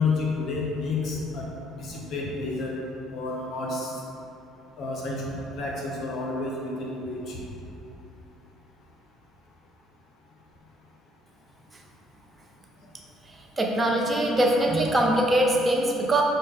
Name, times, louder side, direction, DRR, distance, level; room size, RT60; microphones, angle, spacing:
voice 1, 0.0-1.5 1.8-2.7 3.1-3.9 4.8-7.4, left 3 dB, 60° left, -2 dB, 0.6 m, -30 dB
voice 2, 13.6-16.2, right 1 dB, 25° right, 0 dB, 0.6 m, -22 dB
5.4 x 2.1 x 3.4 m, 2.8 s
hypercardioid pair, 70°, 0 cm